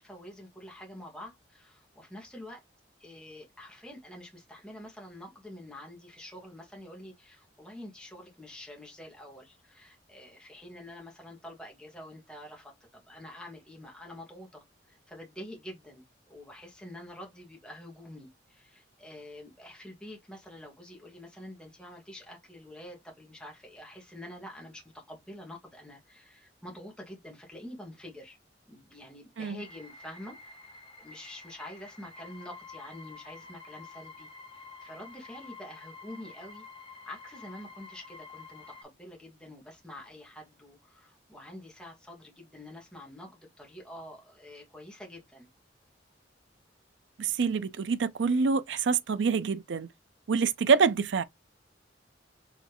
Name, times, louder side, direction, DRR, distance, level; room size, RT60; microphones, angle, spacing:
voice 1, 0.0-2.6 3.0-28.4 28.7-36.6 37.1-45.5, left 1 dB, 5° left, 1.5 m, -47 dB
sound 1, 29.6-38.8, left 4 dB, 30° left, 0.8 m, -49 dB
voice 2, 47.2-49.9 50.3-51.2, right 5 dB, 75° right, 0.5 m, -26 dB
4.9 x 3.2 x 3.0 m
head